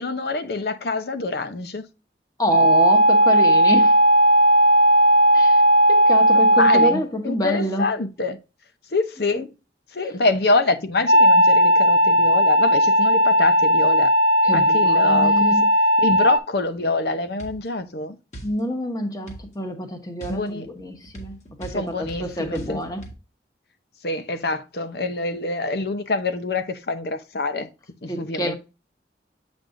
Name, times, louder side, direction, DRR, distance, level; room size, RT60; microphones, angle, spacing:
voice 1, 0.0-1.9 6.6-8.4 8.9-9.5 9.9-14.1 14.5-15.6 16.0-18.2 20.3-20.7 21.7-22.8 24.0-27.7 28.0-28.5, left 2 dB, 60° left, 0.7 m, -25 dB
voice 2, 2.4-4.0 5.3-5.6 5.9-7.8 14.4-15.6 18.4-23.0 28.1-28.5, equal, 20° left, 1.1 m, -27 dB
sound 1, 2.5-7.0 11.1-16.4, equal, 65° right, 1.1 m, -16 dB
sound 2, 17.4-17.6 18.3-18.6 19.3-19.5 20.2-23.1, right 2 dB, 40° left, 1.6 m, -40 dB
7.5 x 5.3 x 2.6 m
head